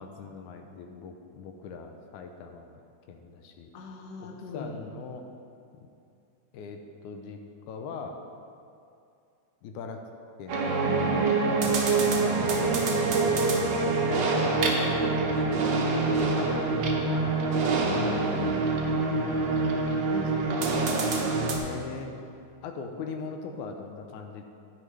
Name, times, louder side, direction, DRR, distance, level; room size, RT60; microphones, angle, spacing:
voice 1, 0.0-2.8 3.1-3.7 4.2-5.2 5.8-5.9 6.5-7.4 7.7-8.2 9.6-10.0 10.4-11.8 12.0-13.5 14.0-14.3 14.8-15.7 16.1-18.3 18.9-19.2 21.6-22.1 22.6-24.4, left 5 dB, 85° left, 4 dB, 2.1 m, -40 dB
voice 2, 3.7-4.9 11.7-12.2 15.9-16.5 17.8-18.9 20.1-21.4, left 4 dB, 70° left, 2 dB, 1.9 m, -38 dB
sound 1, 10.5-21.6, right 3 dB, 75° right, 1.0 m, -25 dB
11.0 x 9.5 x 3.3 m, 2.5 s
omnidirectional pair, 3.4 m